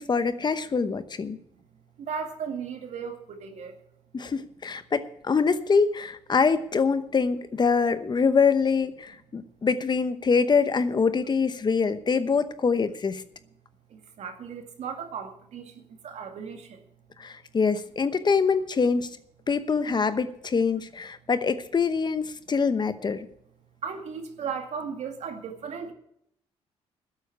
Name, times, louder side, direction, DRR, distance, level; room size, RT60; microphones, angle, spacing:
voice 1, 0.0-1.4 4.1-13.2 17.2-19.1 19.5-23.3, left 5 dB, 35° left, 12 dB, 0.9 m, -24 dB
voice 2, 2.0-3.7 13.9-15.7 16.0-16.8 23.8-25.9, right 6 dB, 70° right, 5 dB, 2.1 m, -36 dB
13.5 x 8.2 x 8.0 m, 0.71 s
cardioid pair, 80°, 12 cm